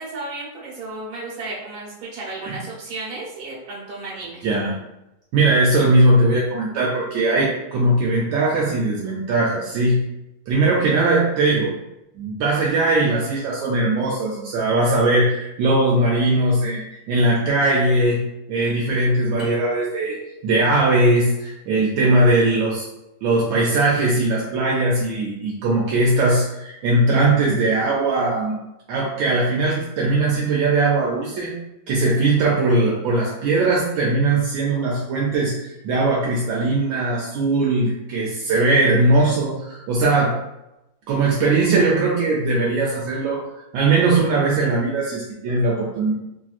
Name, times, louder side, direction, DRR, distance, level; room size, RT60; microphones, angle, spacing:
voice 1, 0.0-4.4, right 2 dB, 60° right, -5 dB, 1.4 m, -33 dB
voice 2, 4.4-4.8 5.3-10.0 10.5-11.7 12.1-16.8 17.1-18.2 18.5-22.9 23.2-28.6 28.9-31.5 31.9-40.3 41.1-43.4 43.7-46.1, right 2 dB, 80° right, -4 dB, 1.3 m, -19 dB
sound 1, 19.4-20.5, right 2 dB, 35° right, 1.3 m, -30 dB
3.1 x 2.6 x 2.4 m, 0.91 s
omnidirectional pair, 2.2 m